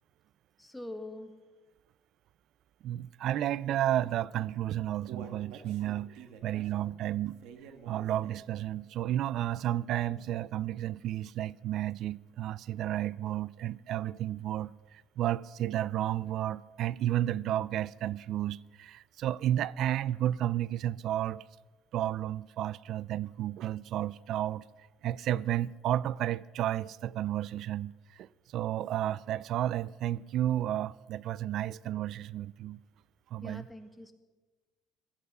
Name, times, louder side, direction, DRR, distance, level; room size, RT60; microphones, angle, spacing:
voice 1, 0.6-1.4 33.4-34.1, left 1 dB, 5° left, 1.6 m, -43 dB
voice 2, 2.8-6.1 6.4-7.4 7.9-21.4 21.9-24.6 25.0-32.8 33.3-33.7, right 12 dB, 60° right, 0.4 m, -32 dB
Human voice, 4.6-8.6 9.0-9.1 9.6-9.7, right 6 dB, 80° right, 1.6 m, -49 dB
17.0 x 13.5 x 5.5 m
cardioid pair, 120°, 0 cm